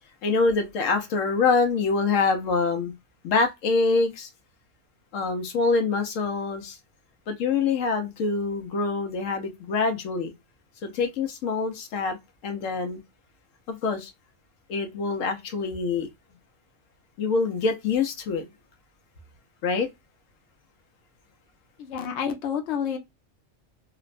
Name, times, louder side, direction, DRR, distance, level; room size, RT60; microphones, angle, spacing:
voice 1, 0.2-2.9 3.2-4.3 5.1-6.8 7.3-10.3 10.8-12.2 12.4-13.0 13.7-14.1 14.7-16.1 17.2-18.5 19.6-19.9, left 4 dB, 90° left, 1.1 m, -25 dB
voice 2, 21.8-23.0, left 7 dB, 65° left, 0.9 m, -29 dB
3.0 x 2.1 x 2.4 m
omnidirectional pair, 1.3 m